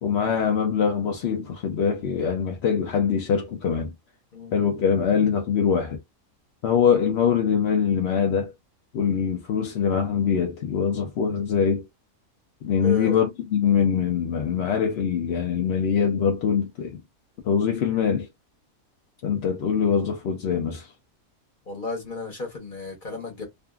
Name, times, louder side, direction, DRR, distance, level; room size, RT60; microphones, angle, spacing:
voice 1, 0.0-3.9 4.5-6.0 6.6-8.5 8.9-11.9 12.6-17.0 17.4-18.3 19.2-20.9, left 7 dB, 60° left, 0.7 m, -23 dB
voice 2, 12.8-13.2 21.7-23.4, left 4 dB, 40° left, 1.1 m, -33 dB
2.5 x 2.5 x 2.3 m
omnidirectional pair, 1.5 m